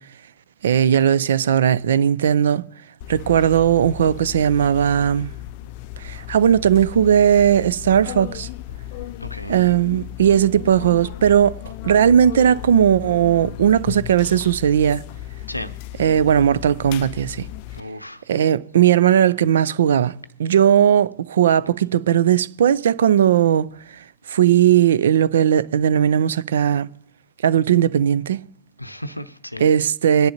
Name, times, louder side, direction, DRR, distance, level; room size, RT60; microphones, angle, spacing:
voice 1, 0.6-2.6 3.1-5.3 6.0-8.5 9.5-11.6 11.8-15.0 16.0-17.5 18.3-20.1 20.4-23.7 24.3-26.9 27.4-28.4 29.6-30.3, right 9 dB, 55° right, 0.4 m, -17 dB
sound 1, 3.0-17.8, left 14 dB, 40° left, 0.4 m, -35 dB
voice 2, 9.2-9.6 15.5-15.8 17.7-18.2 28.8-29.7, equal, 90° left, 0.7 m, -34 dB
22.5 x 10.0 x 2.9 m
figure-of-eight pair, 105°, 0 cm